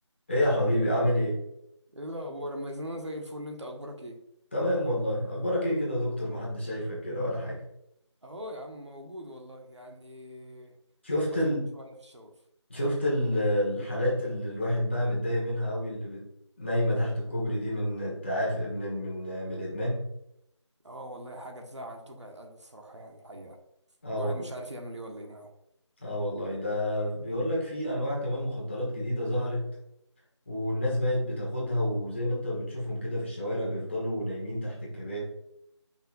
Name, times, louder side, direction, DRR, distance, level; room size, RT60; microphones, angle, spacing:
voice 1, 0.3-1.4 4.5-7.6 11.0-11.8 12.7-16.3 16.6-20.1 24.0-24.5 26.0-29.7 30.5-35.2, equal, 25° left, -5 dB, 1.6 m, -29 dB
voice 2, 1.9-4.2 8.2-10.7 11.3-11.4 11.7-12.3 20.8-23.6 24.1-25.5, equal, 70° right, 2 dB, 1.5 m, -41 dB
7.4 x 5.6 x 2.6 m, 0.78 s
figure-of-eight pair, 175°, 15 cm